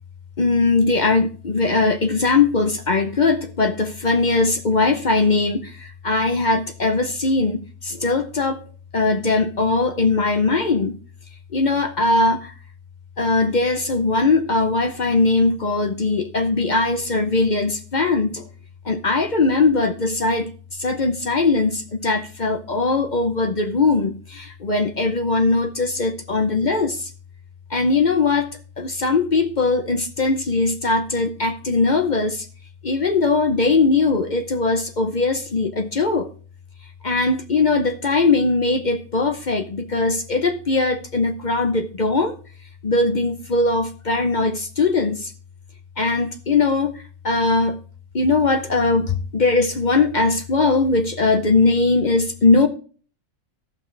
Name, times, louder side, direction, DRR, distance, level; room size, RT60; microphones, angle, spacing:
voice 1, 0.4-8.6 8.9-11.0 11.5-12.5 13.2-18.5 18.8-27.1 27.7-28.5 28.8-32.5 32.8-36.3 37.0-42.3 42.8-45.3 46.0-47.8 48.1-52.7, left 3 dB, 40° left, 7 dB, 0.6 m, -20 dB
15.0 x 5.7 x 3.3 m, 0.40 s
omnidirectional pair, 1.7 m